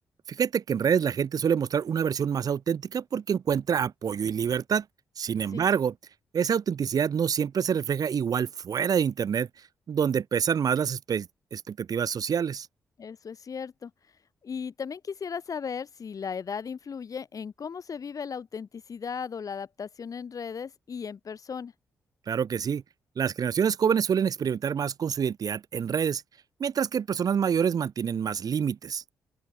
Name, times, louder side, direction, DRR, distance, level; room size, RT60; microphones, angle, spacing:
voice 1, 0.3-4.8 5.2-5.9 6.3-9.5 9.9-12.7 22.3-22.8 23.2-26.2 26.6-29.0, right 7 dB, 60° right, 2.2 m, -26 dB
voice 2, 13.0-13.9 14.4-21.7, left 6 dB, 55° left, 2.7 m, -36 dB
open air
hypercardioid pair, 40°, 7 cm